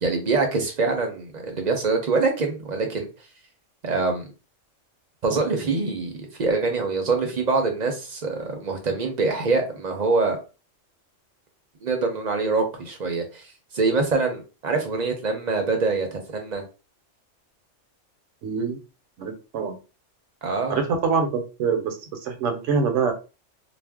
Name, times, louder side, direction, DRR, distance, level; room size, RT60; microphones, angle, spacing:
voice 1, 0.0-3.1 3.8-4.3 5.2-10.4 11.8-16.6 20.4-20.8, right 3 dB, 45° right, 3 dB, 0.6 m, -24 dB
voice 2, 18.4-18.8 19.2-19.8 20.7-23.1, right 5 dB, 75° right, 4 dB, 0.9 m, -25 dB
2.5 x 2.0 x 3.4 m, 0.32 s
omnidirectional pair, 1.3 m